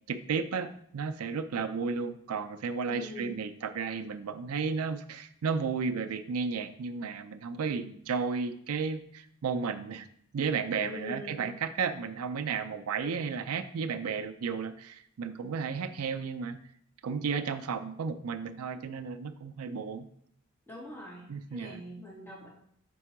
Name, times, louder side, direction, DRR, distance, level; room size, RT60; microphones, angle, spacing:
voice 1, 0.1-10.1 10.3-16.6 17.0-20.1 21.3-21.8, right 5 dB, 85° right, 10 dB, 0.5 m, -33 dB
voice 2, 2.9-3.4 10.8-11.6 20.7-22.5, left 1 dB, 10° left, -6 dB, 2.4 m, -44 dB
6.1 x 3.7 x 4.5 m, 0.68 s
head